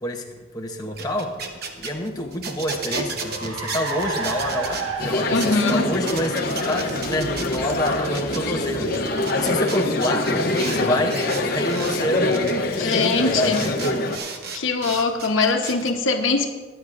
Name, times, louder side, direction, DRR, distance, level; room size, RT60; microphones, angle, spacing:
voice 1, 0.5-1.4 1.8-6.4 6.6-12.4 12.8-13.8, left 1 dB, 20° left, 1 dB, 0.8 m, -27 dB
sound 1, 0.8-4.9 5.3-5.7 6.1-8.4 8.8-10.8 11.1-12.0 12.3-12.5 12.9-13.0 13.3-15.9, right 4 dB, 50° right, 1.0 m, -34 dB
Car, 2.2-9.9, right 3 dB, 85° right, 1.2 m, -35 dB
sound 2, 5.0-14.2, left 2 dB, 50° left, 0.9 m, -24 dB
voice 2, 5.3-5.9 12.8-13.6 14.5-16.5, left 4 dB, 80° left, 5 dB, 1.1 m, -22 dB
22.5 x 9.0 x 2.6 m, 1.4 s
head